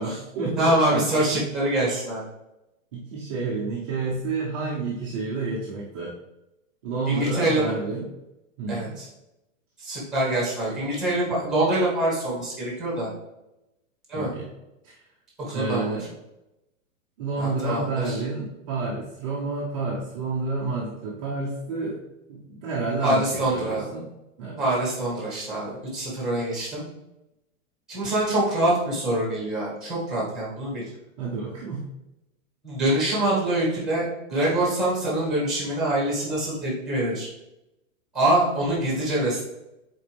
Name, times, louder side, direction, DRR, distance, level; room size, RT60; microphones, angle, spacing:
voice 1, 0.0-1.1 1.3-1.4 2.9-6.1 6.8-8.0 8.6-8.9 14.1-14.5 14.8-15.0 15.5-16.1 17.2-22.0 22.3-24.1 24.4-24.6 31.2-31.8, right 3 dB, 25° right, -5 dB, 0.8 m, -29 dB
voice 2, 0.6-2.2 7.1-7.6 8.7-9.1 9.8-13.1 14.1-14.3 15.5-16.0 17.4-18.2 23.0-23.9 24.6-26.8 27.9-30.8 32.6-37.3 38.1-39.4, right 1 dB, ahead, -5 dB, 1.9 m, -25 dB
7.0 x 4.4 x 3.4 m, 0.92 s
supercardioid pair, 180°, 41 cm